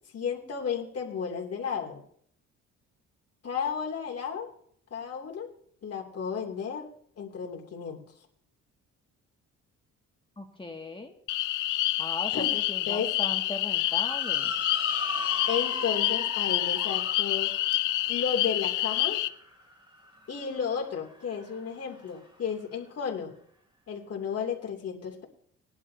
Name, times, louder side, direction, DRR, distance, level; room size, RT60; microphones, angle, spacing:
voice 1, 0.1-2.0 3.4-4.5 4.9-5.5 5.8-8.0 12.3-12.6 12.9-13.1 15.5-17.6 18.1-19.2 20.3-23.3 23.9-25.2, left 6 dB, 55° left, 1 dB, 2.9 m, -33 dB
voice 2, 10.4-11.2 12.0-14.5, left 2 dB, 15° left, 3 dB, 2.1 m, -39 dB
sound 1, 11.3-19.3, left 16 dB, 85° left, 0.6 m, -28 dB
Motor vehicle (road) / Siren, 13.8-22.4, equal, 15° right, 3.6 m, -41 dB
20.0 x 11.0 x 2.8 m, 0.63 s
cardioid pair, 90°, 30 cm